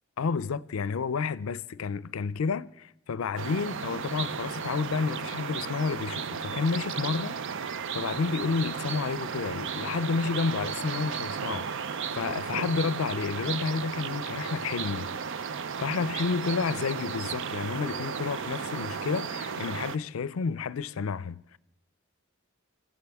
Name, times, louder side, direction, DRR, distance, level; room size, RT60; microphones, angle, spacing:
voice 1, 0.2-7.4 7.9-15.1 15.8-21.6, left 5 dB, 80° left, 0.5 m, -30 dB
sound 1, 3.4-20.0, right 6 dB, 65° right, 0.5 m, -34 dB
25.5 x 15.5 x 3.5 m
head